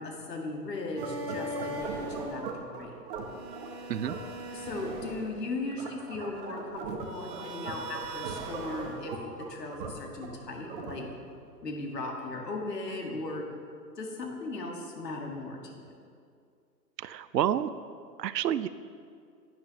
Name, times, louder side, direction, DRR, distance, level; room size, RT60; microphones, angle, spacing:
voice 1, 0.0-2.9 4.5-9.1 9.4-11.1 11.6-13.5 14.0-15.9, left 2 dB, 75° left, 1 dB, 1.8 m, -37 dB
sound 1, 1.0-11.3, right 3 dB, 30° right, 1.0 m, -38 dB
voice 2, 17.0-17.7 18.2-18.7, right 10 dB, 75° right, 15 dB, 0.6 m, -29 dB
10.5 x 9.4 x 3.0 m, 2.3 s
hypercardioid pair, 135°, 50 cm